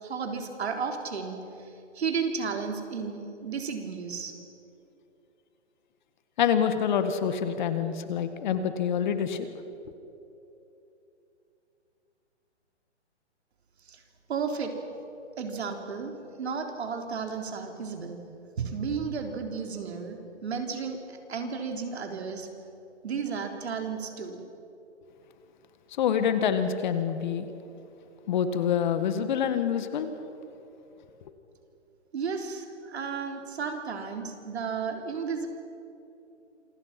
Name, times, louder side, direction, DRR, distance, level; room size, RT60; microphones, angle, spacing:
voice 1, 0.0-4.3 13.9-14.0 14.3-14.7 15.4-18.2 18.6-21.0 21.3-22.5 23.0-24.4 32.1-35.5, right 5 dB, 65° right, 4 dB, 3.7 m, -33 dB
voice 2, 6.4-9.5 26.0-27.5 28.3-30.1, left 8 dB, 40° left, 10 dB, 1.8 m, -26 dB
27.5 x 24.5 x 6.0 m, 2.8 s
hypercardioid pair, 150°, 35 cm